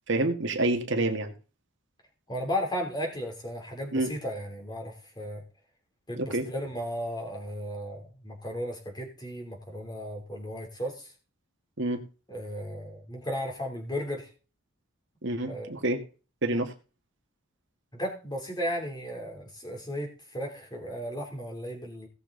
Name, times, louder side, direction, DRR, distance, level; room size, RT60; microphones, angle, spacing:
voice 1, 0.1-1.3 3.9-4.1 6.2-6.5 11.8-12.0 15.2-16.0 16.4-16.7, right 2 dB, 55° right, 5 dB, 1.8 m, -27 dB
voice 2, 2.3-5.4 6.1-11.1 12.3-14.3 15.5-15.7 17.9-22.1, equal, 20° left, 1 dB, 3.2 m, -35 dB
18.0 x 7.0 x 3.9 m, 0.34 s
head